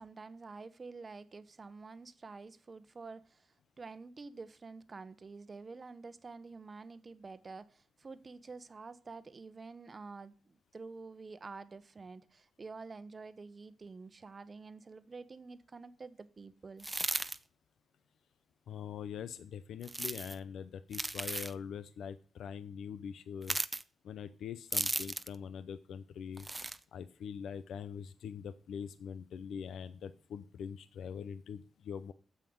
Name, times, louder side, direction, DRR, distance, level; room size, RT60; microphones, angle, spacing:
voice 1, 0.0-16.9, right 4 dB, 35° right, 0.9 m, -49 dB
bread crunch, 16.8-17.4 19.8-20.4 20.9-21.5 23.4-23.8 24.7-25.4 26.4-26.8, right 2 dB, 15° right, 0.6 m, -35 dB
voice 2, 18.7-23.6 24.0-32.1, left 7 dB, 85° left, 0.6 m, -43 dB
9.1 x 7.5 x 7.8 m
cardioid pair, 95°, 0 cm